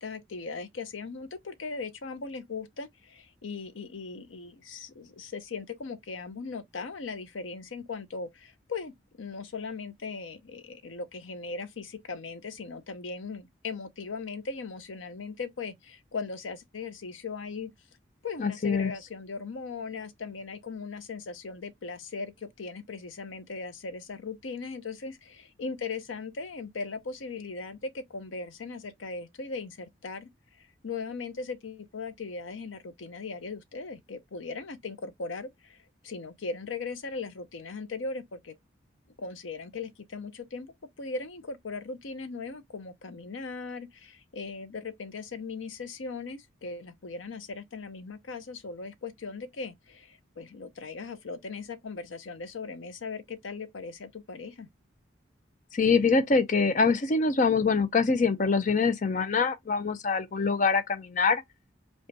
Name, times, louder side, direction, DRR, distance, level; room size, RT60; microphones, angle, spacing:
voice 1, 0.0-8.9 9.2-17.7 18.2-30.3 30.6-35.8 36.0-38.5 39.2-54.7, left 4 dB, 85° left, 0.7 m, -38 dB
voice 2, 18.4-18.9 55.7-61.4, left 4 dB, 40° left, 0.5 m, -24 dB
5.2 x 2.3 x 2.7 m
head